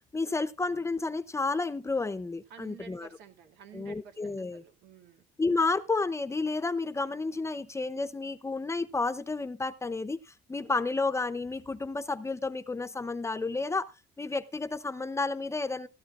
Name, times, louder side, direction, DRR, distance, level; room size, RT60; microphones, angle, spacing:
voice 1, 0.1-3.1 3.7-4.6 5.4-10.2 10.5-13.9 14.2-15.9, left 3 dB, 15° left, 0.6 m, -31 dB
voice 2, 2.5-5.2, right 7 dB, 85° right, 2.3 m, -51 dB
16.0 x 12.5 x 2.5 m
cardioid pair, 110°, 17 cm